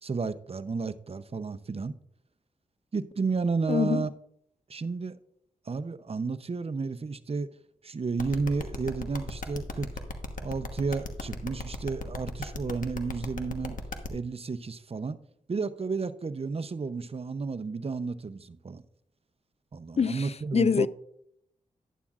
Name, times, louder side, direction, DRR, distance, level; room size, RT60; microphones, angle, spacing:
voice 1, 0.0-1.9 2.9-4.1 4.7-5.2 5.6-7.5 7.8-9.9 10.4-13.8 14.1-15.2 15.5-18.8 19.7-20.9, right 4 dB, 45° right, 0.7 m, -32 dB
voice 2, 3.7-4.0 20.0-20.3 20.5-20.9, left 6 dB, 50° left, 0.4 m, -24 dB
sound 1, 8.2-14.1, left 4 dB, 75° left, 1.2 m, -36 dB
11.0 x 11.0 x 2.5 m
cardioid pair, 50°, 14 cm